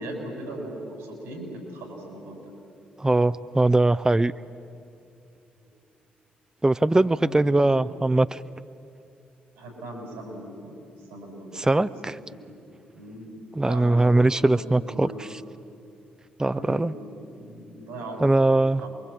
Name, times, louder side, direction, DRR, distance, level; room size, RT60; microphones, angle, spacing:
voice 1, 0.0-2.4 5.6-5.8 6.9-8.0 9.6-12.6 12.9-14.1 14.4-15.3 15.7-15.8 16.5-19.0, right 1 dB, 85° right, 1 dB, 7.1 m, -39 dB
voice 2, 3.0-4.3 6.6-8.4 11.5-12.1 13.6-15.1 16.4-16.9 18.2-18.8, right 2 dB, 15° right, 13 dB, 0.5 m, -21 dB
28.0 x 22.5 x 8.6 m, 2.6 s
hypercardioid pair, 40°, 4 cm